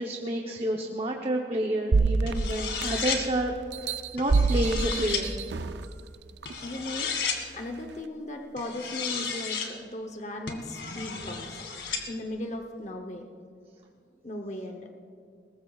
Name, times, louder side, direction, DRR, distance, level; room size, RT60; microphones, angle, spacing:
voice 1, 0.0-5.3, right 1 dB, 30° right, 1 dB, 0.8 m, -30 dB
sound 1, 1.9-3.2 3.7-5.8 6.4-6.5, right 3 dB, 70° right, 0.5 m, -26 dB
sound 2, 2.3-3.2 4.2-5.2 6.5-7.4 8.6-9.7 10.5-12.0, left 6 dB, 85° left, 2.0 m, -33 dB
voice 2, 6.6-7.1 7.5-11.6 12.1-13.3 14.2-14.9, left 1 dB, 40° left, 4 dB, 0.8 m, -37 dB
21.5 x 19.5 x 2.4 m, 2.5 s
head